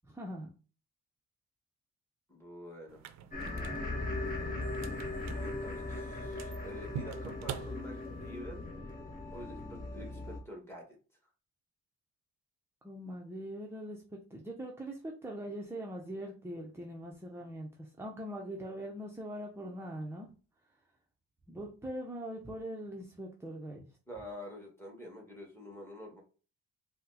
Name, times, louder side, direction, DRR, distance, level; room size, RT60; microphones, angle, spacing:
voice 1, 0.1-0.5 3.4-3.9 12.8-20.3 21.5-23.9, right 1 dB, 10° right, 0 dB, 0.5 m, -42 dB
voice 2, 2.3-3.0 5.3-8.6 9.3-11.0 24.1-26.2, left 1 dB, 10° left, -1 dB, 1.3 m, -47 dB
sound 1, 2.9-8.4, right 9 dB, 65° right, 0.4 m, -46 dB
sound 2, 3.3-10.4, left 2 dB, 30° left, 1.0 m, -39 dB
4.2 x 2.1 x 2.7 m, 0.36 s
cardioid pair, 90°, 30 cm